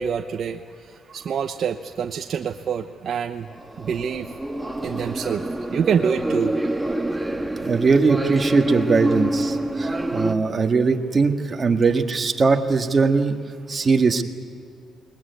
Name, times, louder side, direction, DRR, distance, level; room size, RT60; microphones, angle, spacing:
voice 1, 0.0-3.5 3.8-4.3 4.8-5.4 5.7-6.6, right 7 dB, 60° right, 5 dB, 0.9 m, -26 dB
sound 1, 3.5-10.3, right 1 dB, 10° right, 1.6 m, -26 dB
voice 2, 7.6-13.4 13.7-14.2, right 4 dB, 35° right, 4 dB, 1.9 m, -20 dB
21.0 x 20.5 x 9.6 m, 2.4 s
cardioid pair, 90°, 0 cm